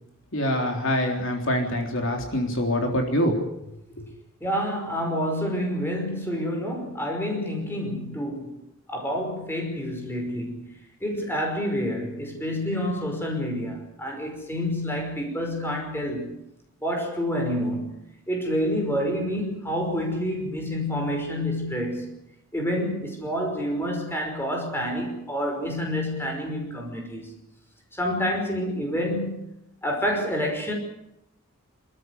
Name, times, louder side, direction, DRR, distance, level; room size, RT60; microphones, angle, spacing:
voice 1, 0.3-3.3, equal, 60° left, 2 dB, 3.7 m, -25 dB
voice 2, 4.4-8.5 8.9-10.6 11.0-16.3 16.8-17.9 18.3-22.1 22.5-27.3 28.0-29.3 29.8-30.7, equal, 10° left, 2 dB, 5.5 m, -28 dB
27.0 x 13.5 x 9.7 m, 0.83 s
head